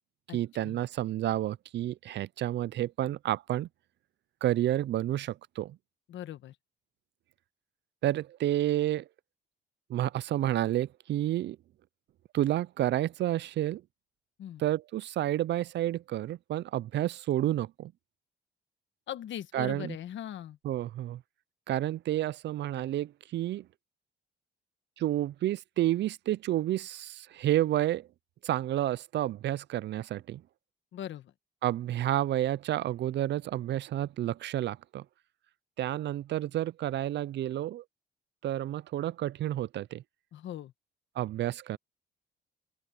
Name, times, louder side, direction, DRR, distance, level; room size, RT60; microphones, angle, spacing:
voice 1, 0.3-3.7 4.4-5.8 8.0-9.0 9.9-11.6 12.3-13.8 14.6-17.9 19.5-20.0 20.6-21.2 21.7-23.7 25.0-28.1 28.4-30.4 31.6-35.0 35.8-37.8 38.4-40.0 41.2-41.8, right 13 dB, 60° right, 0.4 m, -30 dB
voice 2, 6.1-6.5 14.4-14.6 19.1-20.6 30.9-31.3 40.3-40.7, left 11 dB, 70° left, 1.3 m, -40 dB
open air
cardioid pair, 90°, 20 cm